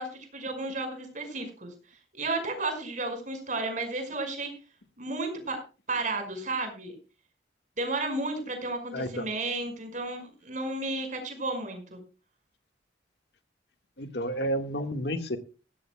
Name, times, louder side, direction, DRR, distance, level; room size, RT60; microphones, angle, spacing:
voice 1, 0.0-1.7 2.2-4.5 5.0-5.6 5.9-7.0 7.8-12.0, right 2 dB, 45° right, 5.4 m, -33 dB
voice 2, 8.9-9.3 14.0-15.4, equal, 65° left, 1.7 m, -31 dB
18.0 x 15.5 x 2.3 m
head